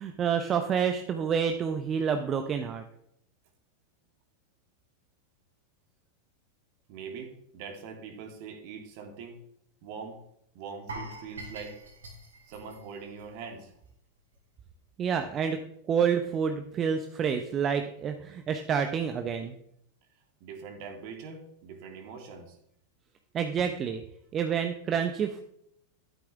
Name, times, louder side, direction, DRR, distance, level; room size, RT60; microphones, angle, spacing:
voice 1, 0.0-2.8 15.0-15.6 15.9-19.5 23.3-24.0 24.3-25.4, right 7 dB, 25° right, 7 dB, 1.0 m, -28 dB
voice 2, 6.9-9.4 9.8-10.2 10.5-11.8 12.5-13.7 20.4-22.6, right 5 dB, 45° right, 5 dB, 2.6 m, -42 dB
sound 1, 10.9-13.9 14.2-14.4 14.8-14.9, right 2 dB, 70° right, 4.1 m, -44 dB
13.0 x 12.0 x 3.6 m, 0.72 s
figure-of-eight pair, 90°, 0 cm